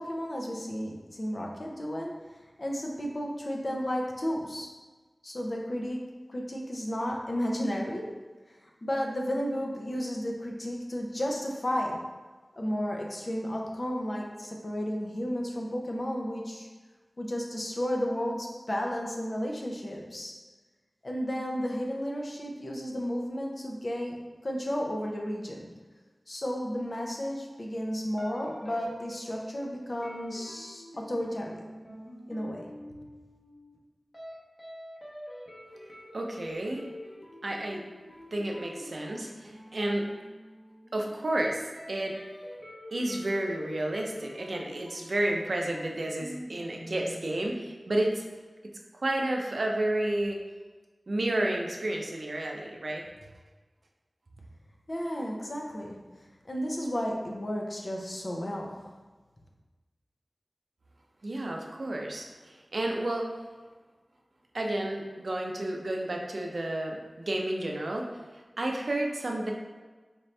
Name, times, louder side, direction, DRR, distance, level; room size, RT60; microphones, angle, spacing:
voice 1, 0.0-2.1 2.6-4.7 5.2-8.1 8.8-12.0 12.6-16.7 17.2-20.3 21.0-25.7 26.3-31.6 32.3-32.7 54.9-56.0 56.5-58.8, equal, 50° left, 0 dB, 0.6 m, -33 dB
sound 1, 28.2-33.8 34.1-34.3 34.6-47.5, equal, 30° left, 0.9 m, -46 dB
voice 2, 36.1-36.9 37.4-37.8 38.3-40.1 40.9-42.2 42.9-48.2 48.9-50.4 51.1-53.1 61.2-63.3 64.5-68.2 68.6-69.5, right 1 dB, 75° right, 0 dB, 0.5 m, -31 dB
4.3 x 2.6 x 3.2 m, 1.3 s
wide cardioid pair, 65°, 0 cm